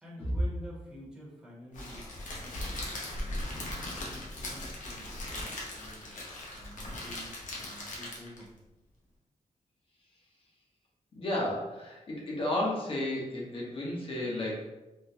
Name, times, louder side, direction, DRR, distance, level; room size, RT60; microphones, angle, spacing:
voice 1, 0.0-3.5 4.0-6.2 6.5-8.5, equal, 5° right, -6 dB, 1.0 m, -49 dB
Crackle, 1.7-8.5, left 1 dB, 75° left, 0.8 m, -39 dB
voice 2, 11.1-14.7, left 1 dB, 45° left, -3 dB, 1.0 m, -33 dB
3.7 x 2.3 x 2.8 m, 1.0 s
wide cardioid pair, 125°, 13 cm